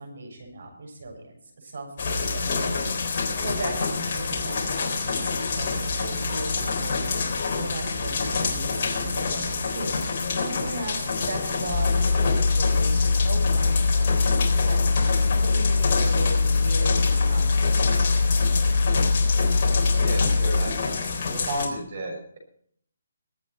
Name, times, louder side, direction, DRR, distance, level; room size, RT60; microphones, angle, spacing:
voice 1, 0.0-2.9 3.4-7.1 7.6-9.9 10.4-18.2, right 2 dB, 65° right, 2 dB, 7.1 m, -37 dB
sound 1, 2.0-21.7, left 4 dB, 35° left, 3.8 m, -28 dB
sound 2, 11.7-20.6, left 4 dB, 30° right, 6.6 m, -22 dB
voice 2, 20.0-20.8 21.3-22.4, right 1 dB, 45° right, 0 dB, 6.3 m, -32 dB
22.5 x 9.0 x 4.4 m, 0.63 s
hypercardioid pair, 170°, 0 cm